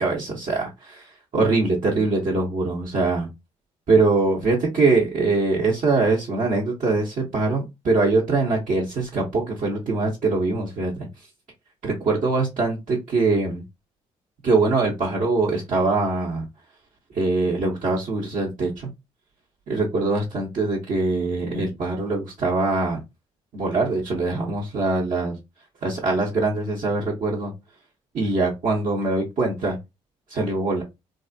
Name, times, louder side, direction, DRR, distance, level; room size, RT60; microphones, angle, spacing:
voice 1, 0.0-3.3 3.9-11.1 11.8-13.6 14.4-16.4 17.1-18.9 19.7-23.0 23.5-25.4 25.8-27.5 28.1-29.8 30.3-30.8, right 3 dB, 55° right, -3 dB, 1.1 m, -23 dB
3.3 x 2.4 x 2.7 m, 0.23 s
hypercardioid pair, 50°, 16 cm